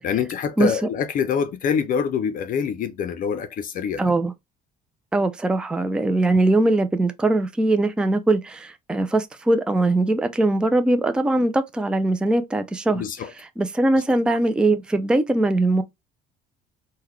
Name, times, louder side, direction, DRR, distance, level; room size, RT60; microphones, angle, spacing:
voice 1, 0.0-4.0 12.9-13.3, left 7 dB, 50° left, 0.5 m, -25 dB
voice 2, 4.0-4.3 5.1-15.8, right 2 dB, 5° right, 0.4 m, -21 dB
3.7 x 2.2 x 3.1 m
cardioid pair, 120°, 18 cm